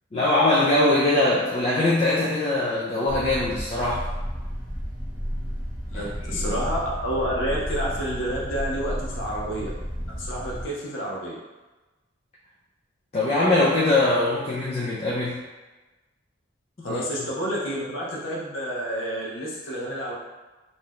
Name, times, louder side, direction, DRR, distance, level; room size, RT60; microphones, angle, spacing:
voice 1, 0.1-4.1 5.9-6.5 13.1-15.5 16.9-17.0, left 2 dB, 30° left, -5 dB, 0.3 m, -22 dB
sound 1, 3.1-10.7, equal, 10° left, 0.9 m, -32 dB
voice 2, 5.9-9.7 10.1-11.4 16.8-20.1, equal, 80° left, -4 dB, 0.6 m, -29 dB
2.6 x 2.2 x 3.4 m, 1.2 s
head